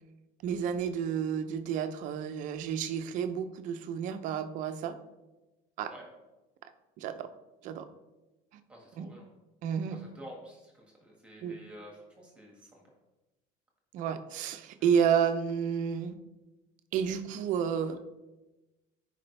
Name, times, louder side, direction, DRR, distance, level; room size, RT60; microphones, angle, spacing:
voice 1, 0.4-5.0 5.8-5.9 7.0-7.3 7.6-7.9 8.5-8.6 9.0-9.1 9.6-10.0 11.4-11.6 13.9-16.2 16.9-18.0, right 7 dB, 45° right, 9 dB, 0.7 m, -31 dB
voice 2, 8.7-9.2 9.9-12.8 14.8-15.0, equal, 5° right, -2 dB, 1.7 m, -50 dB
14.5 x 5.1 x 3.3 m, 1.1 s
cardioid pair, 175°, 18 cm